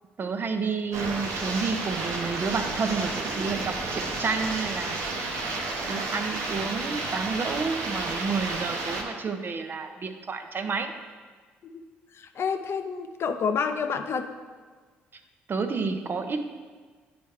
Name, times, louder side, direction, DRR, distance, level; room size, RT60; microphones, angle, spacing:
voice 1, 0.2-5.0 5.9-10.9 15.5-16.4, right 4 dB, 40° right, 7 dB, 0.7 m, -30 dB
sound 1, 0.9-9.0, right 3 dB, 70° right, 0.9 m, -31 dB
voice 2, 12.2-14.3, left 6 dB, 50° left, 8 dB, 0.6 m, -29 dB
9.1 x 4.4 x 3.2 m, 1.5 s
hypercardioid pair, 50°, 5 cm